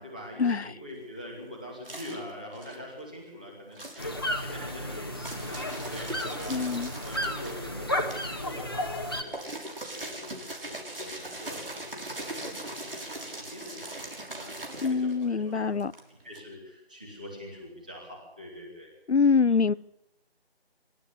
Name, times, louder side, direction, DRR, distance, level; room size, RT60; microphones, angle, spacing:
voice 1, 0.0-6.7 7.0-15.7 16.2-18.9 19.5-19.6, equal, 10° right, -2 dB, 2.3 m, -44 dB
sound 1, 0.9-3.3 3.7-16.4, right 1 dB, 60° right, 6.1 m, -41 dB
sound 2, 4.0-9.2, left 1 dB, 20° left, 1.7 m, -33 dB
voice 2, 6.5-6.9 14.8-15.9 19.1-19.7, left 5 dB, 90° left, 21 dB, 0.8 m, -24 dB
26.0 x 12.5 x 9.8 m, 0.93 s
figure-of-eight pair, 175°, 32 cm